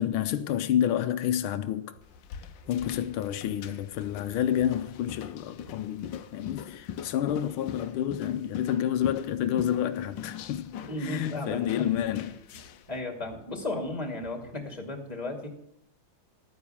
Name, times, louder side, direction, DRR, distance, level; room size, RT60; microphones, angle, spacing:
voice 1, 0.0-1.9 2.7-12.7, left 10 dB, 85° left, 1.5 m, -29 dB
sound 1, 1.6-1.7 1.9-2.2 2.6-2.7 3.0-3.1 3.4-4.0 4.4-4.5 4.8-4.9 5.2-5.3 5.6-6.2 6.5-6.7 7.0-7.3 7.6-7.8 8.0-8.3 8.5-14.6, right 5 dB, 65° right, 6.3 m, -55 dB
sound 2, 2.0-12.9, left 9 dB, 70° left, 1.4 m, -42 dB
voice 2, 10.9-11.9 12.9-15.5, left 2 dB, 20° left, 2.4 m, -34 dB
12.5 x 9.5 x 7.1 m
omnidirectional pair, 2.3 m